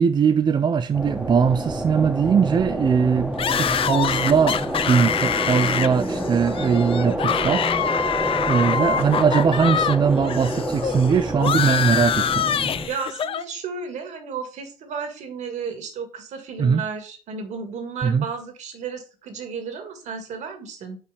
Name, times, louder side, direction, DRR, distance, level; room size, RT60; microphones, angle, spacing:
voice 1, 0.0-7.7 8.5-12.5 16.6-16.8 18.0-18.2, right 6 dB, 35° right, 0.5 m, -21 dB
sound 1, 0.9-12.9, right 1 dB, 10° right, 1.5 m, -28 dB
sound 2, 3.4-10.0 10.2-13.4, left 8 dB, 45° left, 0.6 m, -25 dB
voice 2, 12.9-21.0, right 5 dB, 65° right, 1.9 m, -33 dB
5.6 x 4.6 x 5.0 m
supercardioid pair, 70°, 13 cm